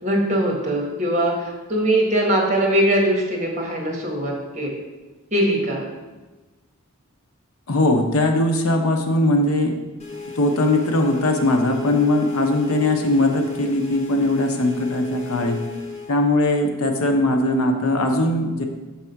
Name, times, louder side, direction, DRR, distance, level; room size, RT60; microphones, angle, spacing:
voice 1, 0.0-4.8 5.3-5.8, right 1 dB, 35° right, -1 dB, 1.4 m, -21 dB
voice 2, 7.7-9.7 10.4-15.6 16.1-18.6, left 1 dB, 80° left, 4 dB, 0.8 m, -20 dB
sound 1, 10.0-16.2, left 4 dB, 30° left, 0.7 m, -35 dB
5.9 x 3.6 x 5.7 m, 1.2 s
head